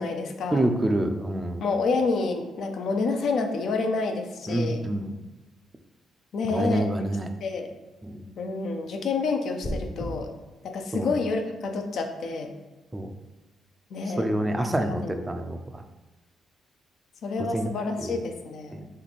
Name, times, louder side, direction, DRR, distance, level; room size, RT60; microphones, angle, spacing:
voice 1, 0.0-0.7 1.6-4.8 6.3-6.9 7.4-7.7 8.4-10.3 10.6-12.5 13.9-14.3 14.5-14.6 15.0-15.2 17.2-18.8, left 3 dB, 65° left, 5 dB, 0.5 m, -28 dB
voice 2, 0.5-1.6 4.5-5.1 6.5-7.3 8.0-8.2 10.9-11.1 12.9-13.1 14.2-15.6 17.5-17.7 18.0-18.2, right 1 dB, 15° right, 6 dB, 0.4 m, -27 dB
sound 1, 9.6-10.1, equal, 35° left, 0.8 m, -32 dB
3.3 x 3.1 x 4.1 m, 1.2 s
cardioid pair, 90°, 0 cm